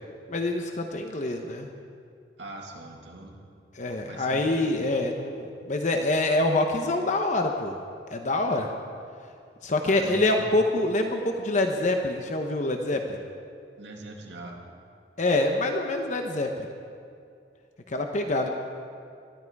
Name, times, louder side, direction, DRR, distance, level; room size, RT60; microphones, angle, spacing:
voice 1, 0.3-1.7 3.7-7.8 8.1-8.7 9.6-13.2 15.2-16.7 17.9-18.5, left 2 dB, 45° left, 4 dB, 0.9 m, -26 dB
voice 2, 2.4-3.3 4.1-4.7 9.8-10.5 13.8-14.6, right 2 dB, 80° right, 0 dB, 2.3 m, -41 dB
21.0 x 12.5 x 4.7 m, 2.4 s
head